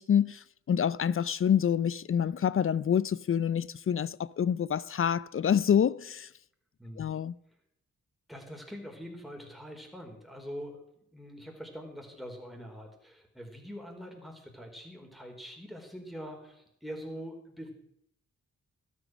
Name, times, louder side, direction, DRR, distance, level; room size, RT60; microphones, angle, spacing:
voice 1, 0.0-6.3 7.0-7.3, left 8 dB, 45° left, 0.5 m, -27 dB
voice 2, 8.3-17.7, equal, ahead, 4.6 m, -44 dB
12.5 x 11.0 x 6.4 m
supercardioid pair, 50°, 30 cm